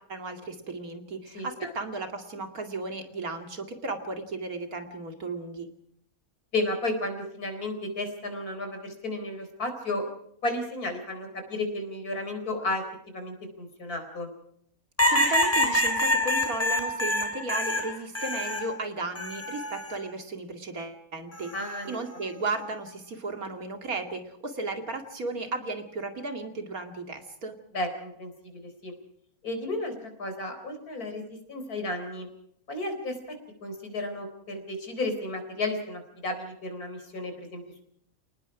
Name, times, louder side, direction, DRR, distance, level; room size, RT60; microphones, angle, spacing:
voice 1, 0.0-5.7 15.0-21.5 21.9-27.6, right 3 dB, 75° right, 6 dB, 2.8 m, -35 dB
voice 2, 1.3-1.7 6.5-10.1 10.4-14.3 21.5-22.0 27.7-28.9 29.4-29.9 30.2-32.3 32.7-37.8, left 2 dB, 90° left, 6 dB, 4.6 m, -33 dB
sound 1, 15.0-18.7 19.2-20.0 21.3-21.7, left 1 dB, 10° left, 3.0 m, -26 dB
29.5 x 19.0 x 4.8 m, 0.71 s
omnidirectional pair, 1.5 m